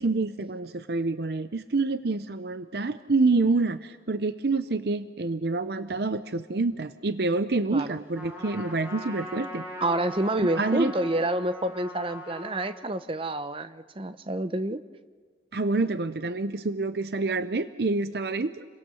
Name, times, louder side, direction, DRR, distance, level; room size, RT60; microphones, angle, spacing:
voice 1, 0.0-9.6 10.4-10.9 15.5-18.7, right 3 dB, 60° right, 12 dB, 0.7 m, -27 dB
Trumpet, 8.1-12.8, left 1 dB, 10° right, 6.2 m, -40 dB
voice 2, 9.8-14.8, right 1 dB, 30° right, 12 dB, 0.8 m, -28 dB
29.5 x 23.0 x 7.0 m, 1.5 s
head